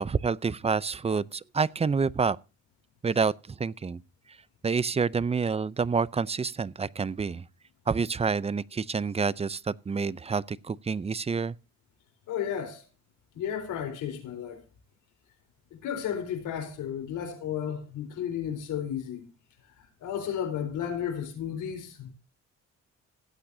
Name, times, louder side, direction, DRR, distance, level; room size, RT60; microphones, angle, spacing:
voice 1, 0.0-2.4 3.0-4.0 4.6-7.5 7.9-11.6, right 5 dB, 20° right, 0.5 m, -28 dB
voice 2, 12.3-12.8 13.3-14.6 15.7-19.3 19.8-22.1, left 9 dB, 85° left, 3.9 m, -33 dB
16.5 x 8.6 x 2.7 m
cardioid pair, 90°, 30 cm